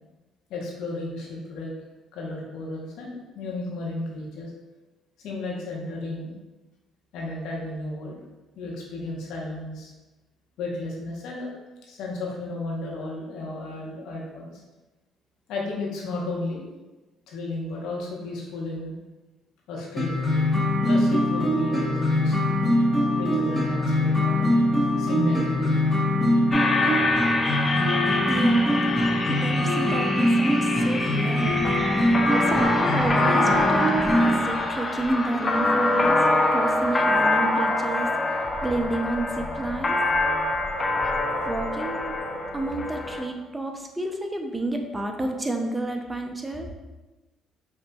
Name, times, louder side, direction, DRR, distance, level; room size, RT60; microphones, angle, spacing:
voice 1, 0.5-1.7 2.1-4.5 5.2-6.3 7.1-8.2 8.6-9.9 10.6-11.5 11.8-14.6 15.5-16.6 17.3-19.0 19.7-20.4 20.8-22.6 23.1-24.6 25.0-25.7 26.6-26.8, left 2 dB, 75° left, -2 dB, 0.9 m, -33 dB
sound 1, 20.0-34.4, left 1 dB, ahead, 1.2 m, -23 dB
sound 2, 26.5-43.2, left 2 dB, 30° left, 0.5 m, -25 dB
voice 2, 28.3-29.0 29.3-31.7 32.3-36.2 36.5-40.0 41.0-42.2 42.5-46.7, right 2 dB, 15° right, 3 dB, 0.5 m, -30 dB
5.4 x 2.6 x 2.3 m, 1.1 s
supercardioid pair, 65°, 0 cm